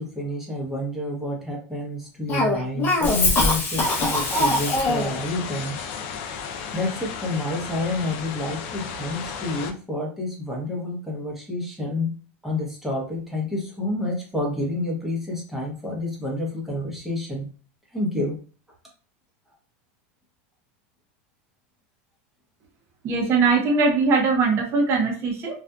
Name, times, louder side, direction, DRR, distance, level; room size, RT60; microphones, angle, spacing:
voice 1, 0.0-5.8 6.7-12.1 12.4-17.5 17.9-18.4, left 1 dB, 5° right, -3 dB, 0.8 m, -29 dB
Cough, 2.3-5.2, left 2 dB, 25° left, 0.7 m, -22 dB
sound 1, 3.8-9.7, left 6 dB, 55° left, 0.4 m, -34 dB
voice 2, 23.0-25.6, right 4 dB, 35° right, 0 dB, 0.7 m, -21 dB
2.6 x 2.4 x 2.2 m, 0.38 s
supercardioid pair, 140°, 8 cm